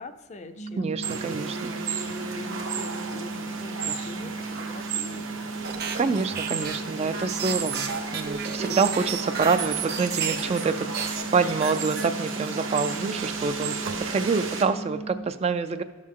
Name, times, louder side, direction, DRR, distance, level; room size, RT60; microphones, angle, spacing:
voice 1, 0.0-1.0 2.2-6.1, left 3 dB, 35° left, 10 dB, 0.5 m, -43 dB
sound 1, 0.6-15.3, right 3 dB, 65° left, 0.9 m, -37 dB
voice 2, 0.8-1.7 6.0-15.8, right 4 dB, 30° right, 11 dB, 0.3 m, -27 dB
sound 2, 1.0-14.6, right 5 dB, 75° right, 1.1 m, -34 dB
sound 3, 5.6-10.7 10.9-12.6, right 6 dB, 55° right, 0.9 m, -33 dB
12.0 x 6.4 x 3.7 m, 1.5 s
head